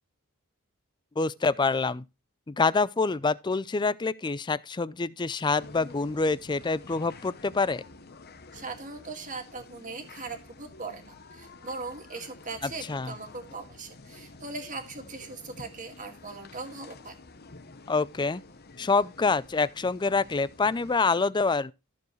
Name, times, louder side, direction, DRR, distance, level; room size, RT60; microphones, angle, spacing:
voice 1, 1.2-2.0 2.5-7.8 12.9-13.1 17.9-18.4 18.8-21.7, left 4 dB, 20° left, 0.4 m, -26 dB
sound 1, 5.6-21.0, left 3 dB, 45° left, 0.9 m, -50 dB
voice 2, 8.5-17.1, right 3 dB, 35° right, 2.0 m, -40 dB
14.0 x 7.0 x 3.1 m
head